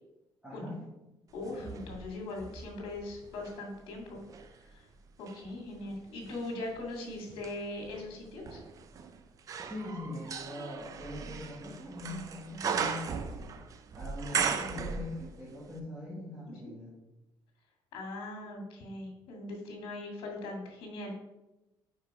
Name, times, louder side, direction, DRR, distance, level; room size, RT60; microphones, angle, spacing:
voice 1, 0.4-0.8 1.4-1.9 9.6-13.6 13.9-16.9, left 1 dB, 10° right, -8 dB, 1.6 m, -42 dB
voice 2, 1.3-4.2 4.7-4.9 5.2-8.6 14.3-15.0 16.5-16.7 17.9-21.2, left 2 dB, 85° left, 1 dB, 2.0 m, -40 dB
sound 1, 1.4-3.6 4.1-15.5 15.8-15.9, right 6 dB, 40° right, 0.5 m, -38 dB
5.1 x 5.0 x 4.6 m, 0.99 s
cardioid pair, 140°, 9 cm